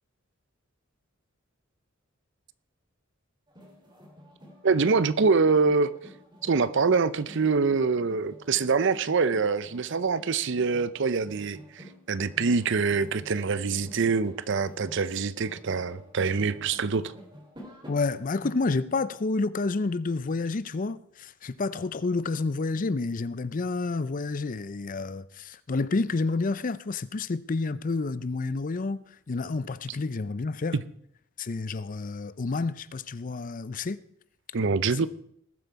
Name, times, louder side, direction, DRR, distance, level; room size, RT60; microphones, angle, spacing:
sound 1, 3.5-18.5, equal, 20° right, 3.2 m, -49 dB
voice 1, 4.6-5.9 6.4-17.1 30.7-30.8 34.5-35.1, right 4 dB, 60° right, 0.6 m, -25 dB
voice 2, 17.9-30.8 31.4-34.0, left 3 dB, 40° left, 0.5 m, -29 dB
19.5 x 7.9 x 4.7 m
head